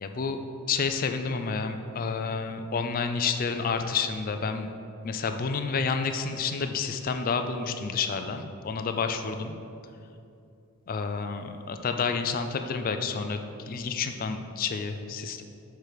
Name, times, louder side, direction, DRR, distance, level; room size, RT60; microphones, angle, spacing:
voice 1, 0.0-0.4 0.7-4.7 5.0-9.5 10.9-13.4 13.6-15.4, left 5 dB, 40° left, 7 dB, 0.4 m, -29 dB
6.7 x 4.5 x 4.8 m, 2.6 s
head